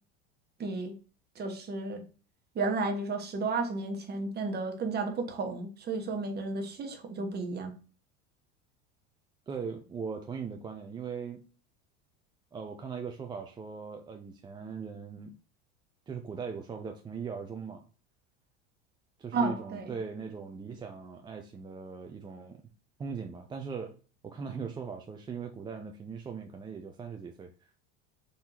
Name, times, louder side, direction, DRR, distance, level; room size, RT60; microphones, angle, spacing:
voice 1, 0.6-1.0 1.3-2.0 2.5-7.7 19.3-20.0, right 3 dB, 30° right, 1.1 m, -32 dB
voice 2, 9.5-11.4 12.5-15.4 16.1-17.9 19.2-22.6 23.0-24.0 24.2-27.5, right 6 dB, 15° right, 0.3 m, -39 dB
3.9 x 2.8 x 4.2 m
supercardioid pair, 115°, 33 cm